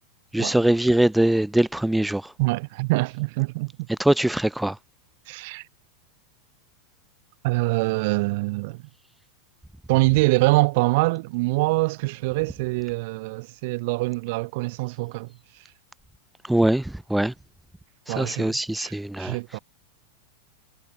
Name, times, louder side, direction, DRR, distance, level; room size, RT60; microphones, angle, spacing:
voice 1, 0.3-2.3 3.9-4.8 16.4-17.3 18.1-19.4, right 1 dB, 5° right, 0.7 m, -22 dB
voice 2, 2.4-3.7 5.3-5.6 7.4-8.9 9.9-15.3 18.1-18.9 19.2-19.6, right 24 dB, 50° right, 1.0 m, -24 dB
figure-of-eight pair, 90°, 0 cm